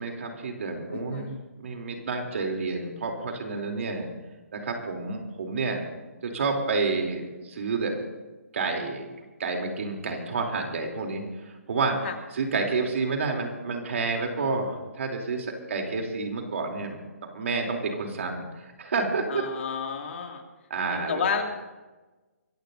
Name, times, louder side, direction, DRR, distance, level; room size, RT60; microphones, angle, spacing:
voice 1, 0.0-1.3 1.6-4.1 4.5-5.8 6.2-7.9 8.5-9.0 9.4-11.9 12.3-19.4 20.7-21.2, right 4 dB, 60° right, 2 dB, 3.3 m, -29 dB
voice 2, 0.9-1.4 12.0-12.1 19.3-20.4 20.9-21.4, left 6 dB, 55° left, 3 dB, 2.5 m, -31 dB
25.0 x 15.0 x 2.7 m, 1.2 s
figure-of-eight pair, 145°, 8 cm